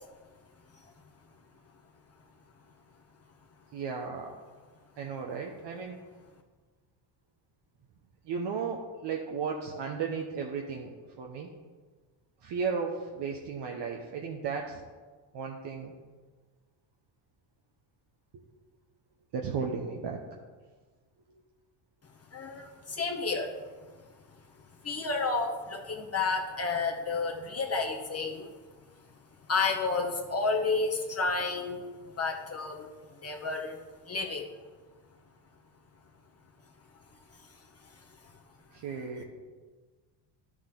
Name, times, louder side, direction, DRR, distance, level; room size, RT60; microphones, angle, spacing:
voice 1, 3.7-4.3 5.0-6.0 8.2-11.5 12.4-14.8 15.3-15.9 19.3-20.2 38.7-39.2, right 5 dB, 60° right, 1 dB, 1.1 m, -35 dB
voice 2, 22.3-23.6 24.8-28.5 29.5-32.9 33.2-33.8 34.1-34.5, left 4 dB, 30° left, 1 dB, 1.2 m, -31 dB
11.0 x 6.4 x 3.8 m, 1.4 s
supercardioid pair, 80°, 48 cm